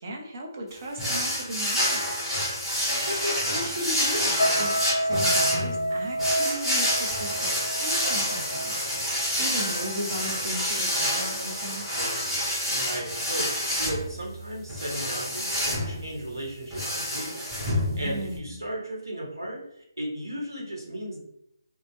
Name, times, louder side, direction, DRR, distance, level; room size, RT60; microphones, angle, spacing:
voice 1, 0.0-2.1 3.1-8.7 9.1-11.9 18.0-18.5, equal, 40° right, 0 dB, 0.7 m, -36 dB
sound 1, 1.0-18.4, equal, 5° right, 1.0 m, -28 dB
sound 2, 4.4-9.7 10.0-10.3, right 1 dB, 65° left, 0.5 m, -29 dB
voice 2, 12.7-21.2, right 1 dB, 80° right, -2 dB, 1.0 m, -36 dB
2.8 x 2.1 x 3.1 m, 0.76 s
figure-of-eight pair, 150°, 2 cm